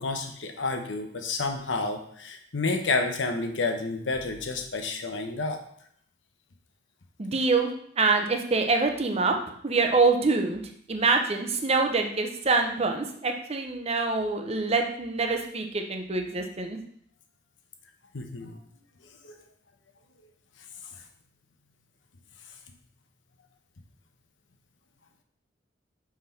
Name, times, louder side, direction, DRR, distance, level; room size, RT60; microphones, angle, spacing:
voice 1, 0.0-5.6 18.1-18.6 19.2-19.3, left 3 dB, 90° left, 5 dB, 0.9 m, -30 dB
voice 2, 7.2-7.7 8.0-9.4 9.6-10.6 10.9-16.8, right 3 dB, 35° right, 4 dB, 0.7 m, -25 dB
5.8 x 4.8 x 4.2 m, 0.64 s
head